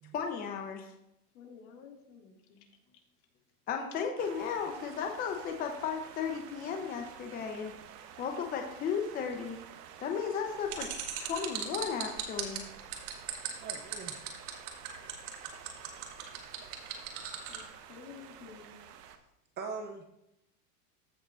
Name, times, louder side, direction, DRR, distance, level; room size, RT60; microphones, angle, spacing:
voice 1, 0.1-0.9 3.7-7.7 8.2-9.6 10.0-10.9 11.2-12.6, left 6 dB, 20° left, 3 dB, 0.7 m, -35 dB
voice 2, 1.3-2.6 17.2-18.7, left 6 dB, 65° left, 1 dB, 2.4 m, -52 dB
sound 1, 4.2-19.2, right 9 dB, 85° right, 1.1 m, -51 dB
sound 2, 10.7-17.6, right 10 dB, 70° right, 2.0 m, -37 dB
voice 3, 13.6-14.1 19.6-20.1, right 4 dB, 25° right, 5 dB, 0.5 m, -41 dB
14.5 x 6.5 x 2.5 m, 0.83 s
supercardioid pair, 140°, 46 cm